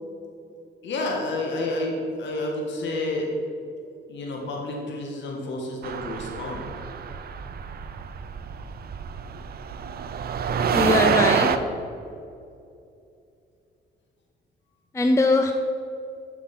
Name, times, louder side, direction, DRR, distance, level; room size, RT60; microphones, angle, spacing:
voice 1, 0.8-3.3 4.1-6.7, left 2 dB, 70° left, 0 dB, 1.6 m, -30 dB
sound 1, 5.8-11.6, right 7 dB, 50° right, 0.6 m, -27 dB
voice 2, 10.7-11.5 14.9-15.5, left 2 dB, 15° left, 4 dB, 0.6 m, -21 dB
7.6 x 6.0 x 5.9 m, 2.6 s
cardioid pair, 90°, 20 cm